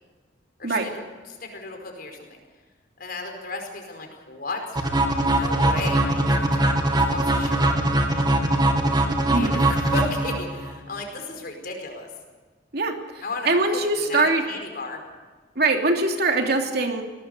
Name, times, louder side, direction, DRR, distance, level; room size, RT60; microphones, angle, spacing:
voice 1, 0.6-2.4 3.0-4.8 5.4-7.8 9.4-12.1 13.2-15.0, left 2 dB, 55° left, 3 dB, 5.0 m, -34 dB
sound 1, 4.7-10.7, right 1 dB, 25° right, 2.2 m, -21 dB
voice 2, 12.7-14.4 15.6-17.0, right 3 dB, 60° right, 3 dB, 2.9 m, -23 dB
22.5 x 18.5 x 6.8 m, 1.4 s
head